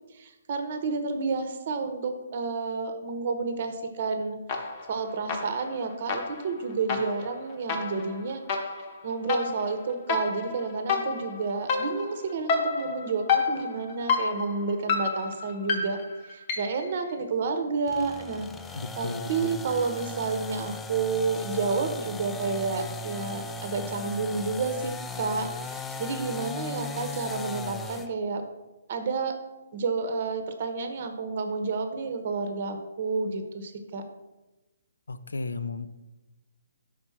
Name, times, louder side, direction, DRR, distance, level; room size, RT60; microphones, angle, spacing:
voice 1, 0.1-4.4 4.9-8.4 9.0-16.0 16.3-18.5 19.0-28.4 28.9-29.4 29.7-34.0, right 4 dB, 45° right, 7 dB, 0.8 m, -30 dB
sound 1, 4.5-5.0 5.3-16.9, left 4 dB, 35° left, 0.9 m, -30 dB
sound 2, 17.9-28.1, left 3 dB, 10° left, 0.3 m, -37 dB
voice 2, 18.7-19.6 35.1-35.9, left 3 dB, 75° left, 11 dB, 0.5 m, -34 dB
4.9 x 4.5 x 5.6 m, 1.1 s
figure-of-eight pair, 140°, 0 cm